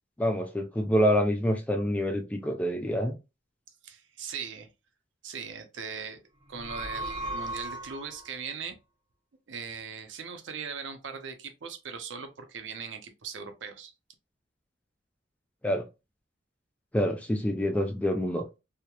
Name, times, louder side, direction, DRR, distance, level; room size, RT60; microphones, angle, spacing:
voice 1, 0.2-3.2 15.6-15.9 16.9-18.5, equal, 5° left, 0.3 m, -26 dB
voice 2, 3.8-4.7 5.2-6.2 6.5-8.8 9.5-13.9, right 6 dB, 70° right, 0.5 m, -39 dB
sound 1, 6.4-8.3, right 1 dB, 20° right, 0.7 m, -36 dB
2.8 x 2.1 x 2.2 m
head